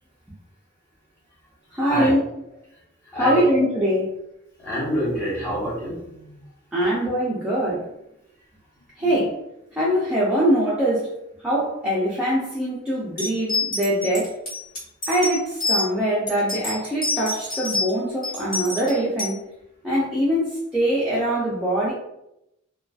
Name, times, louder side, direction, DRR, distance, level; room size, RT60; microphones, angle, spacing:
voice 1, 1.7-2.2 3.1-4.2 6.7-7.9 9.0-9.4 9.7-11.1 11.4-14.4 15.1-19.5 19.8-21.9, equal, 5° right, -8 dB, 0.4 m, -23 dB
voice 2, 4.6-6.4, equal, 10° left, -8 dB, 1.2 m, -27 dB
sound 1, 13.2-15.9 16.3-17.9 18.2-19.3, left 2 dB, 45° left, 1.1 m, -26 dB
2.4 x 2.3 x 2.3 m, 0.83 s
head